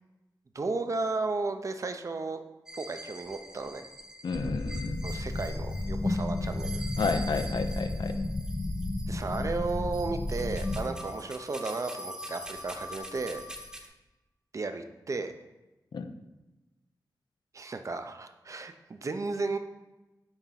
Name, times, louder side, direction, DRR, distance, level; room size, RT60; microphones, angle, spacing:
voice 1, 0.5-2.4 2.7-3.9 5.0-6.8 9.1-13.4 14.5-15.3 17.5-19.6, right 3 dB, 45° right, 8 dB, 0.6 m, -34 dB
sound 1, 2.7-13.9, equal, 10° right, 0.9 m, -44 dB
voice 2, 4.2-5.0 7.0-8.1 15.9-16.1, left 4 dB, 75° left, 8 dB, 0.6 m, -31 dB
sound 2, 4.3-10.8, left 2 dB, 20° left, 0.7 m, -32 dB
8.9 x 3.5 x 5.8 m, 1.1 s
wide cardioid pair, 125°, 8 cm